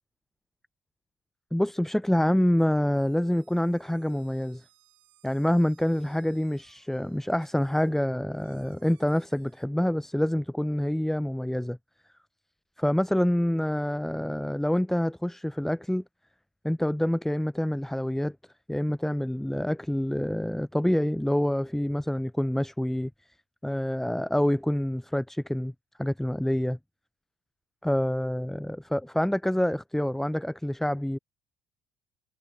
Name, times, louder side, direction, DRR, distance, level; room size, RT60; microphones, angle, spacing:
voice 1, 1.5-4.6 5.2-11.8 12.8-16.0 16.6-18.4 18.7-23.1 23.6-25.7 26.0-26.8 27.8-31.2, left 1 dB, 5° left, 0.5 m, -27 dB
sound 1, 2.6-9.7, right 16 dB, 80° right, 4.4 m, -65 dB
hypercardioid pair, 50°, 12 cm